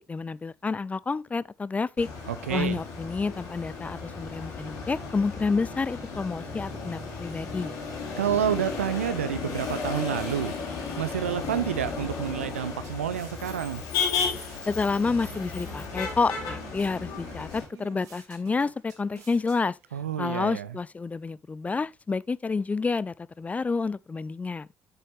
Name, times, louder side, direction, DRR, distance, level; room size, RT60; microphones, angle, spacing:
voice 1, 0.0-2.1 2.5-7.7 14.7-19.8 20.2-24.7, left 4 dB, 20° left, 0.4 m, -29 dB
Motor vehicle (road), 2.0-17.6, left 5 dB, 60° left, 3.4 m, -34 dB
voice 2, 2.3-2.8 8.2-10.5 11.0-13.8 19.9-20.7, right 9 dB, 80° right, 0.6 m, -29 dB
sound 1, 9.8-20.0, right 7 dB, 55° right, 2.5 m, -51 dB
8.5 x 6.9 x 3.2 m
figure-of-eight pair, 50°, 7 cm